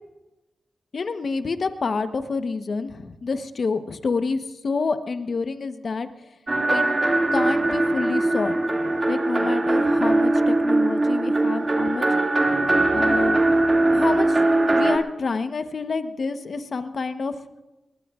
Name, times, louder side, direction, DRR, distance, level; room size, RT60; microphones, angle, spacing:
voice 1, 0.9-4.4 4.6-6.1 6.7-6.8 7.3-8.6 8.8-12.1 12.9-13.4 13.9-14.4 14.7-17.3, left 4 dB, 60° left, 9 dB, 1.1 m, -28 dB
sound 1, 6.5-15.0, right 2 dB, 35° right, 2.3 m, -21 dB
22.5 x 20.0 x 2.5 m, 1.0 s
cardioid pair, 45°, 0 cm